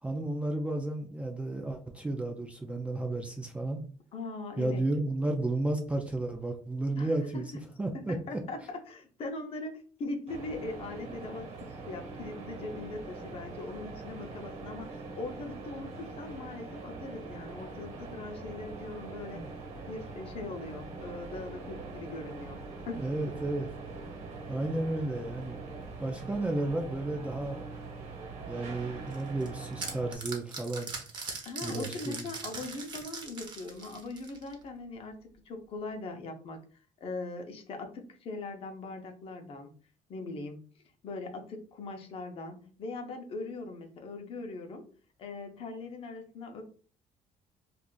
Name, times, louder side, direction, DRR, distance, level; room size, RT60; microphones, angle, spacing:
voice 1, 0.0-3.8 4.6-7.5 7.8-8.2 19.3-19.5 23.0-23.7 24.5-25.6 26.0-27.7 28.5-30.9 31.6-32.3, right 2 dB, 10° right, 3 dB, 0.3 m, -32 dB
voice 2, 4.1-4.8 7.0-7.4 7.9-19.4 19.9-23.1 29.3-29.4 31.5-35.2 35.5-36.6 37.0-39.7 40.1-40.6 41.0-44.9 45.2-46.6, left 3 dB, 45° left, 5 dB, 0.6 m, -40 dB
sound 1, 10.3-30.2, right 3 dB, 55° right, 1.1 m, -43 dB
sound 2, 29.1-34.6, right 4 dB, 35° right, 0.7 m, -41 dB
2.4 x 2.4 x 3.7 m, 0.42 s
cardioid pair, 160°, 13 cm